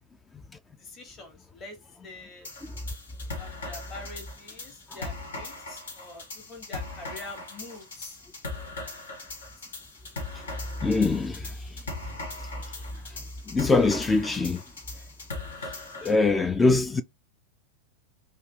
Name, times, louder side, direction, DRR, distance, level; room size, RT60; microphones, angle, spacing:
voice 1, 0.7-2.5 3.4-8.2, left 2 dB, 30° left, 1.3 m, -45 dB
sound 1, 2.4-16.2, left 3 dB, 70° left, 0.9 m, -39 dB
voice 2, 10.8-11.5 13.5-14.6 16.0-17.0, left 3 dB, 15° left, 0.3 m, -23 dB
3.2 x 2.3 x 2.8 m
figure-of-eight pair, 90°, 0 cm